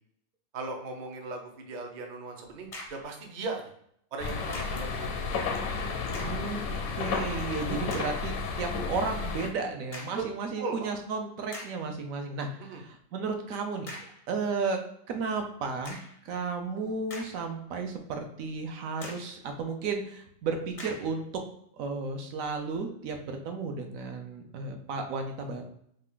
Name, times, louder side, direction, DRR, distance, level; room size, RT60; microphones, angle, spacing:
voice 1, 0.5-3.7 4.1-5.4 10.1-10.2 10.6-10.9 12.7-12.8, right 3 dB, 55° right, 2 dB, 0.5 m, -38 dB
Whip Cracks Sound Pack, 2.6-3.1 4.5-4.9 6.0-6.5 7.1-7.2 7.9-8.2 9.9-10.3 11.0-11.1 11.5-11.9 13.9-14.3 15.8-16.2 16.8-17.7 18.1-18.2 19.0-19.4 20.8-21.2, left 1 dB, 50° left, 0.4 m, -44 dB
sound 1, 4.2-9.5, left 4 dB, 90° left, 1.1 m, -32 dB
voice 2, 6.1-6.6 7.0-14.8 15.1-16.0 16.2-21.3 21.8-25.6, right 4 dB, 75° right, 4 dB, 1.0 m, -33 dB
3.2 x 2.4 x 3.7 m, 0.70 s
omnidirectional pair, 1.5 m